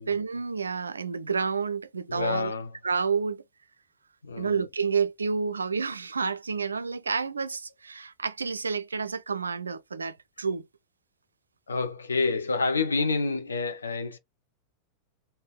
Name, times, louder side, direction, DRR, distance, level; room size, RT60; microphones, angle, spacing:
voice 1, 0.0-2.5 2.8-3.4 4.4-10.7, right 5 dB, 75° right, 0.3 m, -29 dB
voice 2, 2.1-2.7 4.2-4.7 11.7-14.2, left 4 dB, 75° left, 0.7 m, -28 dB
3.5 x 2.7 x 3.4 m
figure-of-eight pair, 90°, 0 cm